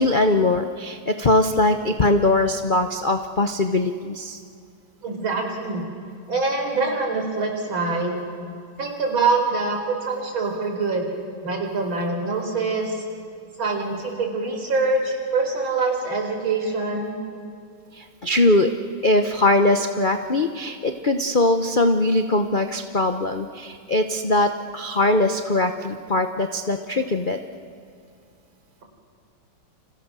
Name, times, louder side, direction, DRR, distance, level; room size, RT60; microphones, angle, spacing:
voice 1, 0.0-4.4 17.9-18.7 19.0-27.4, left 2 dB, 45° left, 7 dB, 0.6 m, -21 dB
voice 2, 5.0-5.8 6.3-8.2 8.8-11.1 11.4-13.0 13.6-17.2, right 3 dB, 65° right, 3 dB, 5.1 m, -24 dB
29.5 x 28.0 x 6.3 m, 2.4 s
omnidirectional pair, 2.4 m